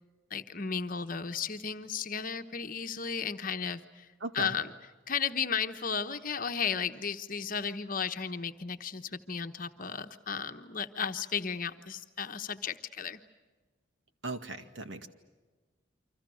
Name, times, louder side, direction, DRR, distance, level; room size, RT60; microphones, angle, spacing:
voice 1, 0.3-4.1 4.3-4.7 5.1-13.2, left 6 dB, 45° left, 8 dB, 1.1 m, -34 dB
voice 2, 4.2-4.6 14.2-15.1, right 2 dB, 65° right, 7 dB, 2.1 m, -37 dB
29.5 x 25.5 x 6.4 m, 1.3 s
head